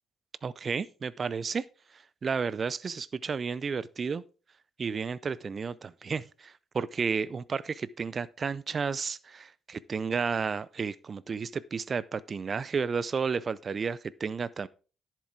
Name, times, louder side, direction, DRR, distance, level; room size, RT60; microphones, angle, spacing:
voice 1, 0.4-1.6 2.2-4.2 4.8-14.7, right 5 dB, 40° right, 0.5 m, -32 dB
11.0 x 7.5 x 3.7 m
figure-of-eight pair, 45°, 0 cm